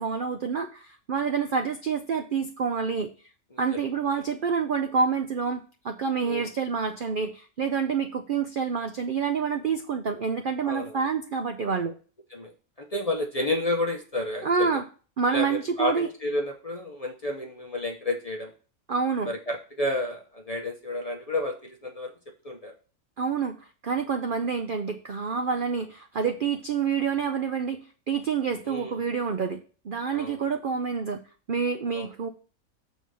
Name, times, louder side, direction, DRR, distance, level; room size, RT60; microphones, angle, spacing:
voice 1, 0.0-3.1 3.6-11.9 14.4-14.8 15.2-16.1 18.9-19.3 23.2-23.5 23.8-27.8 28.1-31.2 31.5-32.3, right 5 dB, 60° right, 6 dB, 0.5 m, -27 dB
voice 2, 10.6-11.0 12.3-12.5 12.8-14.7 15.3-18.5 19.2-22.1 22.4-22.7 28.7-29.0 30.1-30.4 31.9-32.1, left 1 dB, 35° left, 3 dB, 0.7 m, -31 dB
6.9 x 4.1 x 6.2 m, 0.38 s
omnidirectional pair, 1.5 m